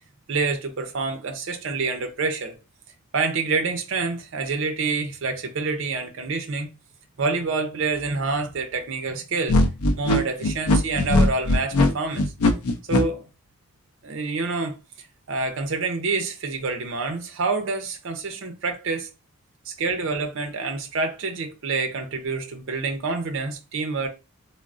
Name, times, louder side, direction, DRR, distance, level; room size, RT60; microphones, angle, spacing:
voice 1, 0.3-2.6 3.1-6.7 7.2-9.6 10.0-12.2 12.9-13.3 14.0-19.1 19.7-24.1, right 4 dB, 55° right, 0.5 m, -27 dB
sound 1, 9.5-13.0, left 1 dB, 85° left, 0.5 m, -19 dB
3.5 x 2.0 x 2.4 m
head